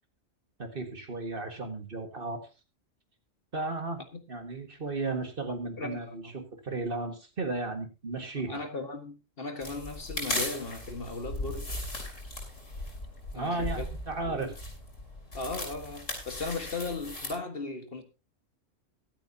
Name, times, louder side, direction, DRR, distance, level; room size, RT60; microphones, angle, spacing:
voice 1, 0.6-2.5 3.5-4.0 4.3-8.6 13.3-14.5, right 3 dB, 45° right, 2.0 m, -34 dB
voice 2, 5.8-6.3 8.3-11.7 13.3-13.9 14.2-14.5 15.3-18.0, left 3 dB, 50° left, 1.8 m, -37 dB
sound 1, 9.6-17.3, left 1 dB, 85° left, 5.6 m, -37 dB
23.0 x 8.5 x 2.8 m
omnidirectional pair, 1.3 m